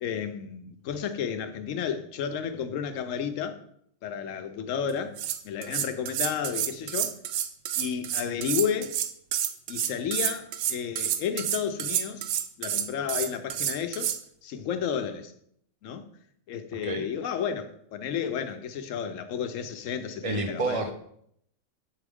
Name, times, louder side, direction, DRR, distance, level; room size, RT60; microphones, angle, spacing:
voice 1, 0.0-3.6 4.0-5.2 5.4-7.2 7.8-9.0 9.7-12.3 12.6-14.1 14.4-15.3 15.8-16.1 16.5-20.9, left 7 dB, 75° left, 1.0 m, -32 dB
sound 1, 4.9-14.2, right 10 dB, 85° right, 1.0 m, -29 dB
voice 2, 16.7-17.1 20.2-20.9, right 3 dB, 65° right, 0.3 m, -29 dB
8.1 x 4.7 x 3.5 m
omnidirectional pair, 1.4 m